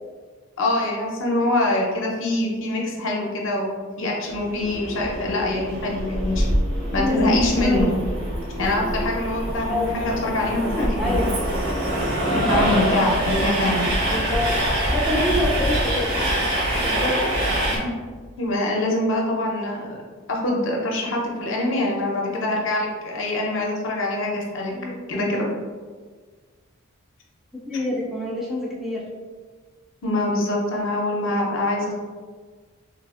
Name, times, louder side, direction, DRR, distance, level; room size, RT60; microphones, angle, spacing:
voice 1, 0.6-6.5 6.9-8.0 8.6-11.3 12.3-13.9 17.7-17.9 18.4-20.0 20.3-24.7 25.1-25.5 30.0-32.0, left 1 dB, 60° left, -1 dB, 0.6 m, -24 dB
Train, 4.3-17.8, right 1 dB, 50° right, 0.7 m, -24 dB
voice 2, 7.0-7.9 9.7-10.0 10.7-11.3 14.1-14.5 14.9-16.1 16.8-17.2 24.7-25.0 27.7-29.0, left 1 dB, ahead, -5 dB, 0.3 m, -25 dB
3.3 x 2.4 x 2.3 m, 1.5 s
head